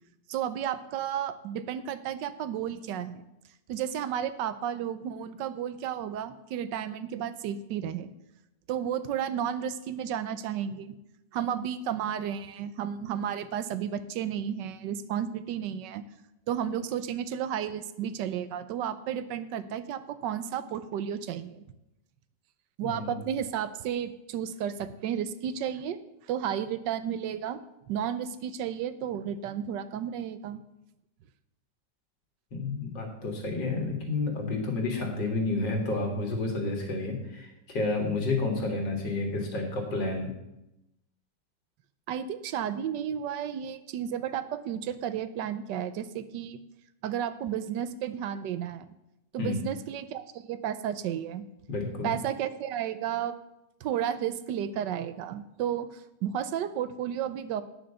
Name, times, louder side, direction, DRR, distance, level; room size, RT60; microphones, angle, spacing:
voice 1, 0.3-3.2 3.7-8.1 8.7-11.0 11.3-16.0 16.5-21.6 22.8-26.0 26.3-27.6 27.9-30.6 42.1-46.6 47.0-48.9 49.3-51.4 52.0-53.4 53.8-57.6, right 9 dB, 85° right, 13 dB, 1.3 m, -32 dB
voice 2, 22.8-23.2 32.5-40.3 49.4-49.6 51.7-52.1, left 3 dB, 85° left, 1 dB, 2.8 m, -30 dB
9.3 x 6.5 x 6.8 m, 0.89 s
omnidirectional pair, 1.9 m